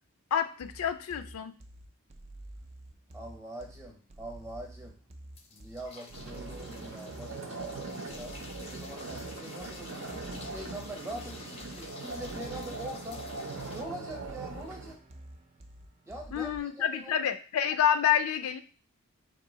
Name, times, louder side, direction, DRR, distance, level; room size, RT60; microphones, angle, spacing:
voice 1, 0.3-1.5 16.3-18.6, left 9 dB, 90° left, 10 dB, 0.4 m, -28 dB
sound 1, 0.6-16.6, right 1 dB, 30° right, 0.4 m, -49 dB
voice 2, 3.1-5.0 5.5-8.3 8.7-13.2 13.7-15.0 16.1-17.3, right 1 dB, 15° right, 1 dB, 0.8 m, -44 dB
sound 2, 5.4-13.8, left 3 dB, 30° left, 0.4 m, -49 dB
sound 3, 6.1-15.0, right 3 dB, 70° right, 0.7 m, -41 dB
3.7 x 2.6 x 3.8 m, 0.37 s
head